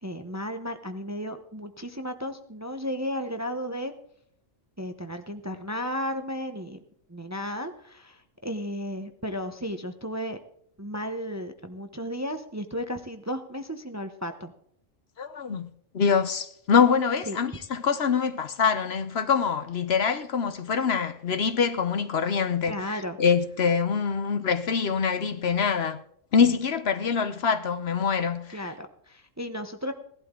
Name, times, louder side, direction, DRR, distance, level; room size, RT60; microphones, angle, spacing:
voice 1, 0.0-3.9 4.8-6.8 7.1-10.4 10.8-14.5 17.3-17.4 22.6-23.2 28.5-29.9, equal, 15° right, 0.7 m, -34 dB
voice 2, 15.2-15.7 15.9-26.0 26.3-28.7, left 6 dB, 60° left, 1.0 m, -25 dB
17.0 x 12.0 x 3.7 m
omnidirectional pair, 1.3 m